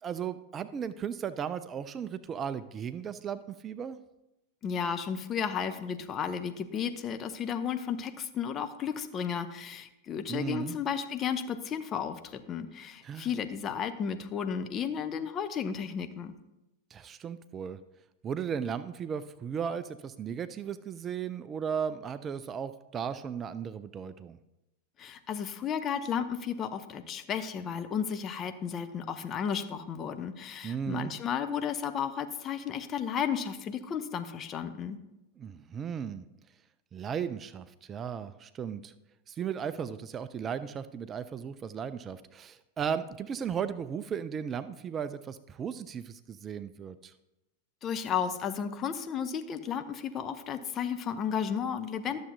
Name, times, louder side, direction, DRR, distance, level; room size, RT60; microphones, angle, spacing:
voice 1, 0.0-4.0 10.3-10.8 13.0-13.3 16.9-17.8 18.2-24.4 30.6-31.1 35.4-36.3 36.9-38.9 39.3-47.1, right 7 dB, 25° right, 13 dB, 0.3 m, -36 dB
voice 2, 4.6-16.3 25.0-35.0 47.8-52.2, left 7 dB, 30° left, 9 dB, 0.6 m, -33 dB
12.0 x 7.0 x 2.7 m, 0.94 s
figure-of-eight pair, 90°, 0 cm